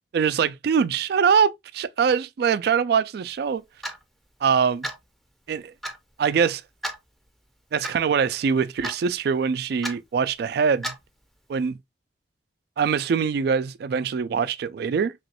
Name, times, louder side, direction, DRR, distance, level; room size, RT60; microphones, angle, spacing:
voice 1, 0.1-3.6 4.4-4.9 5.5-5.7 6.2-6.6 7.7-10.9 11.5-11.8 12.8-15.1, right 6 dB, 60° right, 0.3 m, -23 dB
Clock, 3.8-4.0 4.8-5.0 5.8-6.0 6.8-7.0 7.8-8.0 8.8-9.1 9.8-10.0 10.8-11.1, equal, ahead, 0.5 m, -32 dB
3.1 x 3.0 x 2.8 m
head